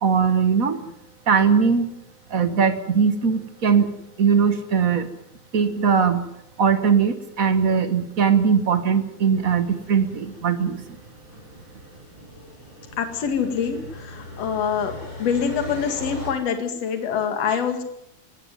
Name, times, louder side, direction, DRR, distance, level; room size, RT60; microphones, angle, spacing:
voice 1, 0.0-0.8 1.3-1.9 2.3-5.1 5.5-6.3 6.6-10.8, right 6 dB, 50° right, 10 dB, 1.0 m, -20 dB
sound 1, 9.4-16.3, left 1 dB, 35° left, 7.3 m, -40 dB
voice 2, 13.0-14.9 15.2-17.8, left 7 dB, 60° left, 7 dB, 3.2 m, -25 dB
19.5 x 17.0 x 9.4 m, 0.80 s
omnidirectional pair, 3.4 m